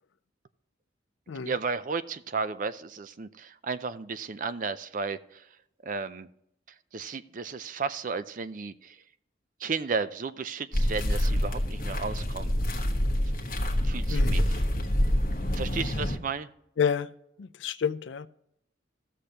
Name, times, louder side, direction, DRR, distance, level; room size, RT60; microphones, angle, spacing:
voice 1, 1.4-5.5 5.8-6.3 6.9-9.0 9.6-12.6 13.8-14.6 15.5-16.5, right 4 dB, 45° right, 0.4 m, -33 dB
sound 1, 10.7-16.2, equal, 45° left, 1.2 m, -26 dB
voice 2, 16.8-17.1 17.4-18.3, left 7 dB, 75° left, 0.4 m, -29 dB
15.5 x 6.6 x 2.9 m
head